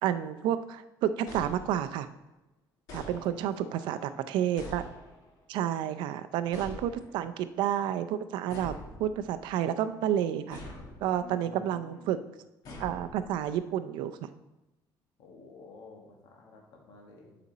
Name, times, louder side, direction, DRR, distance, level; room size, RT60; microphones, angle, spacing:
voice 1, 0.0-2.1 2.9-4.0 4.3-4.8 5.5-8.7 9.0-10.6 11.0-12.2 12.8-14.3, right 10 dB, 75° right, 11 dB, 0.5 m, -30 dB
sound 1, 1.3-2.1 2.9-3.7 4.6-5.4 6.5-7.3 8.5-9.5 10.5-11.3 12.6-13.6, left 1 dB, 50° left, 1.5 m, -45 dB
voice 2, 3.0-4.2 11.1-12.2 15.2-17.4, left 4 dB, 65° left, 0 dB, 1.5 m, -52 dB
8.2 x 5.0 x 4.0 m, 0.98 s
cardioid pair, 180°, 8 cm